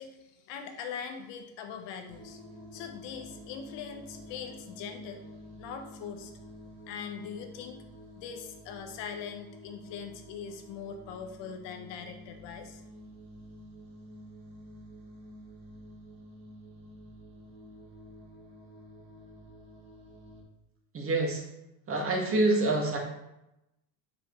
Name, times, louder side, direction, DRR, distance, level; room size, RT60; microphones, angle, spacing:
voice 1, 0.0-2.4 2.7-5.2 5.6-6.3 6.9-7.8 8.2-12.8, left 7 dB, 65° left, 6 dB, 1.2 m, -41 dB
sound 1, 2.1-20.4, equal, 45° right, 2.2 m, -50 dB
voice 2, 20.9-21.4 21.9-23.0, right 2 dB, 30° right, 0 dB, 1.7 m, -26 dB
7.0 x 5.9 x 3.2 m, 0.88 s
supercardioid pair, 120°, 47 cm